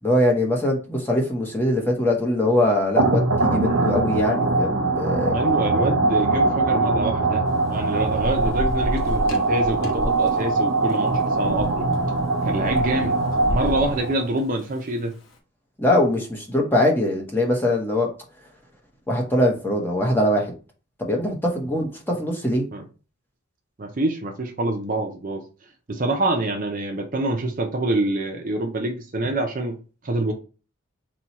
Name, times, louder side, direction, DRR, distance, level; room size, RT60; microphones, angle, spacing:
voice 1, 0.0-5.6 15.8-18.1 19.1-20.5 21.0-22.7, left 1 dB, 10° left, 0.8 m, -22 dB
sound 1, 3.0-14.3, right 3 dB, 70° right, 0.8 m, -22 dB
voice 2, 5.3-7.4 7.7-11.9 12.4-13.2 13.5-15.1 22.7-22.8 23.8-25.4 25.9-29.8 30.0-30.3, right 2 dB, 40° right, 0.5 m, -26 dB
Thunder / Rain, 7.5-15.1, equal, 65° left, 0.9 m, -32 dB
4.3 x 2.2 x 4.1 m
head